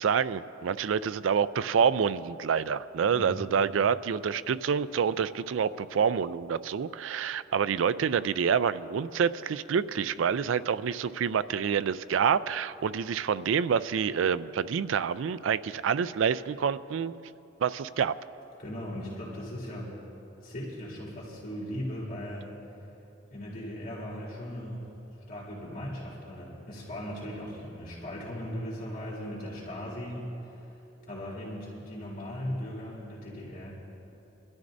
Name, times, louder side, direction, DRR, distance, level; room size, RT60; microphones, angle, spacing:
voice 1, 0.0-17.1 17.6-18.2, right 7 dB, 85° right, 15 dB, 0.4 m, -27 dB
voice 2, 18.6-19.9 20.4-22.5 23.3-24.8 25.3-30.6 31.1-33.7, equal, 50° left, -7 dB, 3.4 m, -38 dB
25.0 x 13.0 x 2.6 m, 2.9 s
head